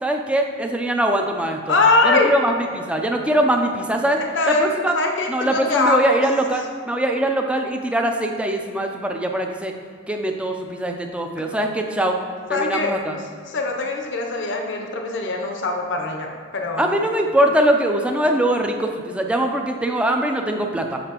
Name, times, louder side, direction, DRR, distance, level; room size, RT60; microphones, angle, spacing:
voice 1, 0.0-1.8 2.0-4.2 4.5-4.9 5.3-9.7 10.1-12.1 12.5-13.1 16.8-21.0, right 1 dB, 5° right, 3 dB, 0.3 m, -22 dB
voice 2, 1.7-2.3 4.2-6.2 12.5-12.9 13.5-16.9, left 3 dB, 65° left, 2 dB, 0.6 m, -22 dB
6.6 x 5.8 x 2.9 m, 2.1 s
head